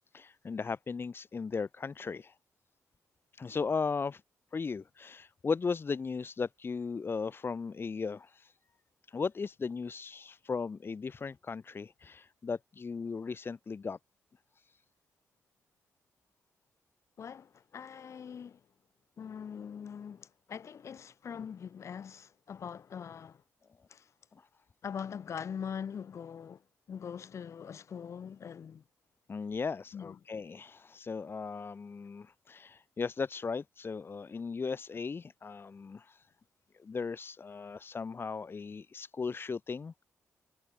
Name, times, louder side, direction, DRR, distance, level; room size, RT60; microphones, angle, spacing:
voice 1, 0.1-2.3 3.3-4.2 4.5-8.5 9.1-14.0 14.6-14.7 21.3-21.4 24.4-24.5 29.3-36.3 36.8-40.0, left 5 dB, 45° left, 1.7 m, -37 dB
voice 2, 17.2-18.6 19.2-23.4 23.9-24.1 24.8-26.6 26.9-28.8 29.9-30.2, left 7 dB, 60° left, 3.3 m, -42 dB
supercardioid pair, 55°, 6 cm